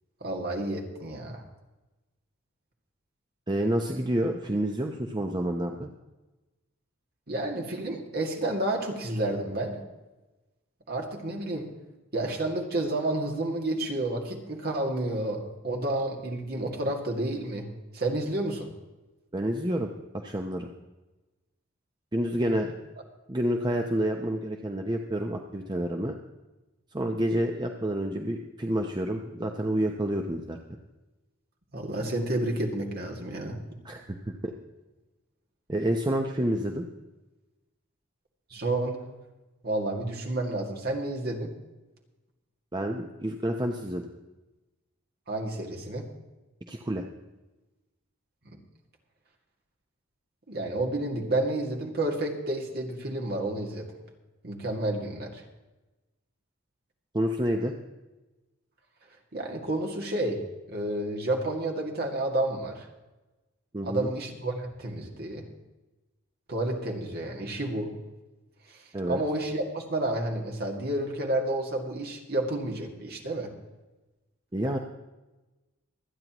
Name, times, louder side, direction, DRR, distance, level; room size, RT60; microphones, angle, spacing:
voice 1, 0.2-1.4 7.3-9.8 10.9-11.7 12.1-17.7 17.9-18.7 31.7-33.6 38.5-39.0 39.6-41.5 45.3-46.0 48.5-48.6 50.5-53.9 54.4-55.4 59.3-60.4 60.7-62.9 63.8-65.4 66.5-67.9 68.7-73.5, right 1 dB, 45° right, 1 dB, 2.1 m, -30 dB
voice 2, 3.5-5.9 19.3-19.9 20.1-20.7 22.1-22.7 23.3-26.2 26.9-30.6 33.8-34.5 35.7-36.8 42.7-44.1 46.7-47.0 57.1-57.7 63.7-64.1 68.9-69.2 74.5-74.8, right 1 dB, 20° right, 3 dB, 0.7 m, -29 dB
25.0 x 9.5 x 3.0 m, 1.1 s
head